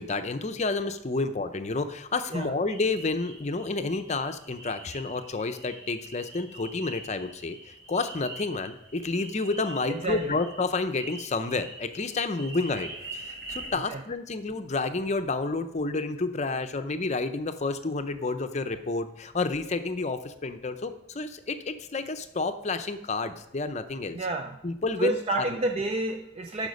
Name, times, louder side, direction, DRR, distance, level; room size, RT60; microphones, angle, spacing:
voice 1, 0.0-24.2 24.6-25.5, left 3 dB, 35° left, 9 dB, 0.6 m, -30 dB
sound 1, 2.7-13.7, right 2 dB, 60° right, 2.3 m, -44 dB
voice 2, 9.9-10.4 13.7-14.0 24.1-24.6 25.0-26.7, right 2 dB, 35° right, 5 dB, 0.4 m, -30 dB
11.5 x 5.1 x 5.3 m, 0.83 s
head